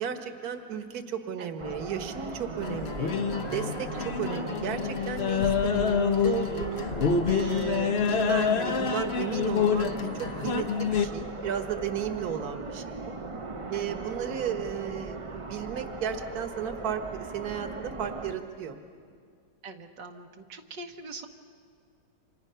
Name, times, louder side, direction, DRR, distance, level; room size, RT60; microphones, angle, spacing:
voice 1, 0.0-3.2 3.5-6.9 7.3-13.2 13.7-18.8, right 8 dB, 60° right, 7 dB, 1.7 m, -34 dB
sound 1, 1.6-18.3, right 3 dB, 35° right, 0.5 m, -39 dB
sound 2, 2.6-11.1, left 6 dB, 45° left, 1.0 m, -27 dB
voice 2, 19.6-21.3, right 3 dB, 80° right, 3 dB, 1.8 m, -43 dB
29.5 x 26.0 x 5.7 m, 2.1 s
omnidirectional pair, 1.9 m